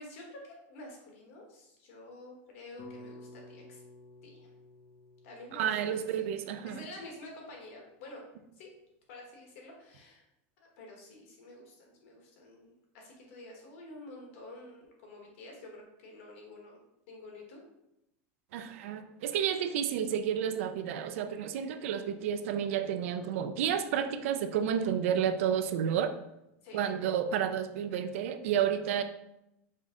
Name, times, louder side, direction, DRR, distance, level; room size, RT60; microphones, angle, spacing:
voice 1, 0.0-3.8 4.2-4.5 5.2-6.3 6.6-8.3 8.6-8.7 9.1-10.2 10.8-16.8 17.1-17.6 26.6-26.9, left 2 dB, 75° left, 0 dB, 1.3 m, -49 dB
sound 1, 2.8-7.1, left 2 dB, 40° left, 0.5 m, -53 dB
voice 2, 5.5-6.8 18.5-26.1 26.7-29.0, right 8 dB, 80° right, 9 dB, 0.4 m, -31 dB
5.0 x 2.1 x 3.7 m, 0.86 s
supercardioid pair, 145°, 7 cm